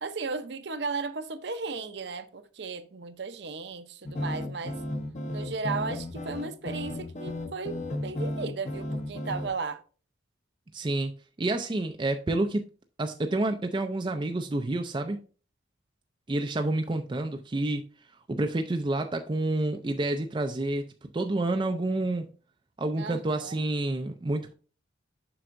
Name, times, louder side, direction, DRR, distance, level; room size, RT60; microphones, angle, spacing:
voice 1, 0.0-4.8 5.3-9.8 23.0-23.5, right 4 dB, 60° right, 0.7 m, -35 dB
sound 1, 4.0-9.5, left 1 dB, 35° left, 0.8 m, -34 dB
voice 2, 10.7-11.1 11.4-12.7 13.0-15.2 16.3-17.9 18.3-20.9 21.1-22.3 22.8-24.5, right 2 dB, 25° right, 0.4 m, -29 dB
7.7 x 6.1 x 2.5 m
head